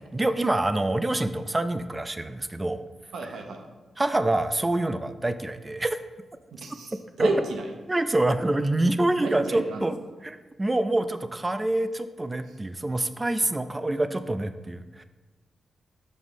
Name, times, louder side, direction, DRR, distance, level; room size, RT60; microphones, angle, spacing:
voice 1, 0.0-2.8 4.0-6.0 7.2-7.3 7.9-10.0 10.2-15.0, right 2 dB, 15° right, 11 dB, 0.3 m, -26 dB
voice 2, 3.1-3.6 6.6-7.7 9.2-9.9, right 2 dB, 80° right, 3 dB, 0.9 m, -32 dB
6.2 x 5.3 x 3.7 m, 1.2 s
wide cardioid pair, 125°, 0 cm